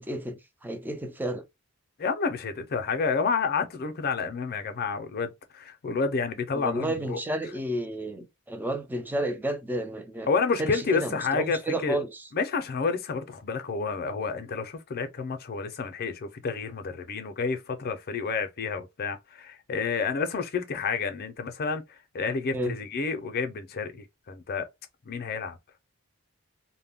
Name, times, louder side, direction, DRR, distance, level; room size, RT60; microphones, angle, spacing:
voice 1, 0.0-1.4 6.5-10.3 10.6-12.2 22.5-22.8, right 1 dB, 10° right, 0.3 m, -31 dB
voice 2, 2.0-7.2 10.3-12.0 12.3-21.8 22.1-24.7 25.1-25.6, left 5 dB, 45° left, 0.5 m, -29 dB
2.1 x 2.1 x 3.4 m
head